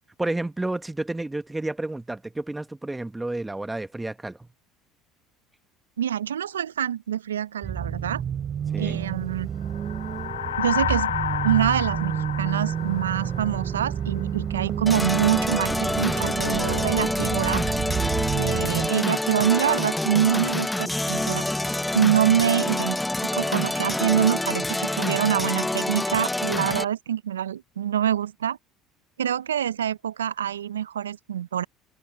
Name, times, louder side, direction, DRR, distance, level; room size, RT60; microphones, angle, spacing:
voice 1, 0.2-4.4 8.7-9.0, right 2 dB, 10° right, 1.2 m, -30 dB
voice 2, 6.0-8.2 8.8-9.5 10.6-11.1 11.4-17.6 18.3-21.5 21.9-23.0 23.3-28.6 29.2-31.6, right 10 dB, 90° right, 0.5 m, -25 dB
sound 1, 7.6-18.9, right 8 dB, 40° right, 3.2 m, -29 dB
sound 2, 9.7-14.2, left 11 dB, 85° left, 0.5 m, -31 dB
sound 3, 14.9-26.8, left 1 dB, 10° left, 0.7 m, -27 dB
hypercardioid pair, 70°, 0 cm